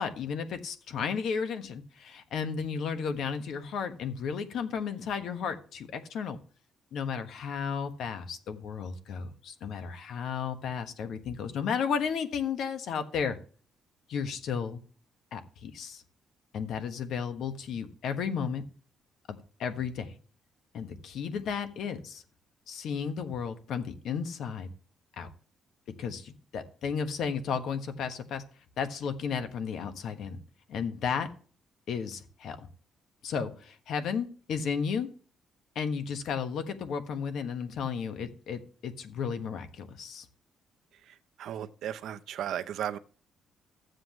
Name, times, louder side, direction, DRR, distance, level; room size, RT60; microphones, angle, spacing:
voice 1, 0.0-6.4 6.9-13.4 14.1-14.8 15.3-16.0 16.5-18.6 19.3-20.1 20.7-22.2 22.7-24.7 25.2-25.3 26.0-28.4 28.8-30.4 30.7-31.3 31.9-32.7 33.2-35.1 35.7-40.3, left 6 dB, 60° left, 1.4 m, -33 dB
voice 2, 41.0-43.0, right 10 dB, 65° right, 0.7 m, -36 dB
13.5 x 7.9 x 3.1 m
cardioid pair, 170°, 0 cm